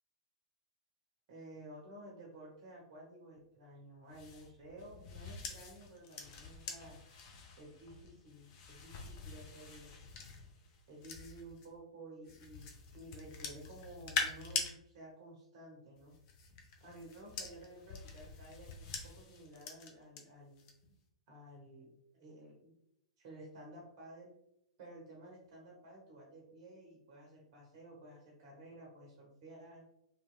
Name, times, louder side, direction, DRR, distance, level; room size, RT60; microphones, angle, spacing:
voice 1, 1.3-7.0 7.5-9.9 10.9-16.1 16.8-20.6 21.3-22.8 23.2-24.3 24.8-29.8, right 1 dB, 45° right, -2 dB, 0.7 m, -53 dB
sound 1, 4.1-11.7 12.3-14.7 16.0-20.2 20.6-20.9, left 5 dB, 45° left, 0.6 m, -44 dB
2.9 x 2.8 x 2.2 m, 0.81 s
figure-of-eight pair, 100°, 3 cm